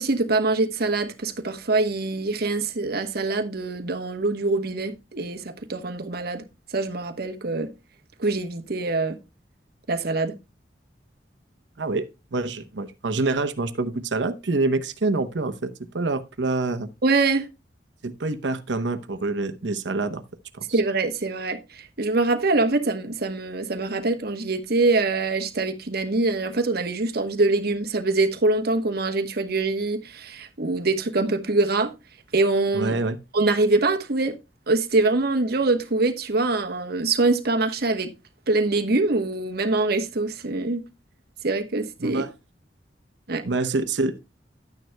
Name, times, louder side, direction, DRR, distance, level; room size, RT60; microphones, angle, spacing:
voice 1, 0.0-6.4 6.7-7.7 8.2-9.2 9.9-10.3 17.0-17.5 20.7-31.9 32.3-33.0 33.3-34.3 34.7-38.1 38.5-40.8 41.4-42.2 43.3-43.4, right 3 dB, 60° right, 1.1 m, -24 dB
voice 2, 11.8-16.9 18.0-20.2 20.5-20.6 32.7-33.2 42.0-42.3 43.4-44.2, right 3 dB, 80° right, 0.8 m, -26 dB
11.5 x 9.2 x 2.2 m
head